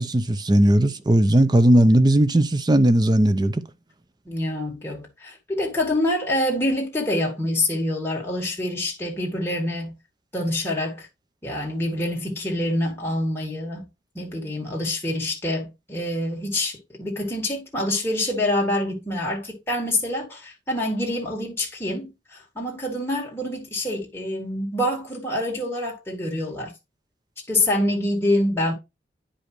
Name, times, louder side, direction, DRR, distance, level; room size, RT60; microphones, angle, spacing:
voice 1, 0.0-3.6, right 1 dB, 25° right, 0.6 m, -17 dB
voice 2, 4.3-9.9 10.3-11.1 11.4-13.8 14.1-26.7 27.5-28.7, left 1 dB, 15° left, 2.1 m, -26 dB
9.9 x 5.2 x 3.1 m
head